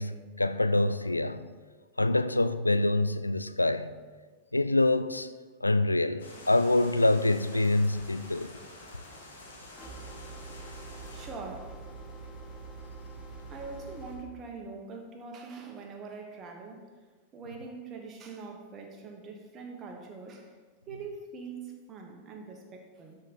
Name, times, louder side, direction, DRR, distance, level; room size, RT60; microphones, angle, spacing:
voice 1, 0.0-1.5 2.0-4.0 4.5-5.3 5.6-8.5, left 2 dB, 85° left, 0.3 m, -26 dB
sound 1, 6.2-11.3, left 2 dB, 65° left, 1.8 m, -48 dB
sound 2, 9.8-14.2, right 3 dB, 30° left, 2.7 m, -44 dB
voice 2, 10.9-11.8 13.5-16.8 17.3-20.5 20.9-23.2, right 4 dB, 30° right, 1.4 m, -43 dB
12.0 x 5.0 x 4.3 m
figure-of-eight pair, 90°, 0 cm